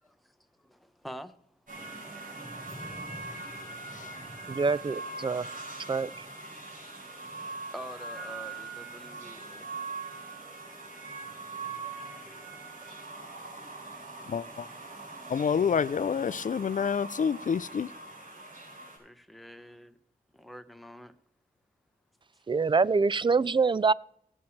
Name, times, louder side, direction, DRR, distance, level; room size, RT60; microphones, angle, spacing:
voice 1, 0.0-1.3 3.7-3.8 7.7-9.7 19.0-20.0 20.3-21.1, equal, ahead, 1.1 m, -46 dB
sound 1, 1.7-19.0, right 3 dB, 55° right, 5.4 m, -42 dB
voice 2, 4.5-5.5 5.9-6.3 22.5-23.9, right 4 dB, 30° right, 0.4 m, -25 dB
voice 3, 14.3-14.7 15.3-17.9, left 7 dB, 55° left, 0.4 m, -28 dB
19.0 x 7.2 x 3.3 m
cardioid pair, 50°, 16 cm